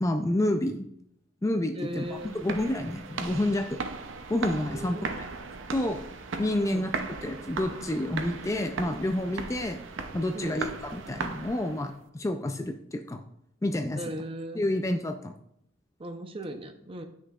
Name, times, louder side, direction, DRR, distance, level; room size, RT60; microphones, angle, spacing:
voice 1, 0.0-0.9 1.4-3.8 4.3-5.0 5.7-6.0 6.4-6.9 7.2-9.8 10.1-13.2 13.6-14.0 14.6-15.3, left 1 dB, 15° left, 5 dB, 0.3 m, -29 dB
voice 2, 1.7-2.4 4.7-5.1 6.6-6.9 10.3-10.7 13.9-14.7 16.0-17.0, right 1 dB, 30° right, 7 dB, 0.6 m, -38 dB
sound 1, 1.9-11.9, right 4 dB, 70° right, 0.6 m, -37 dB
9.6 x 6.2 x 2.4 m, 0.74 s
head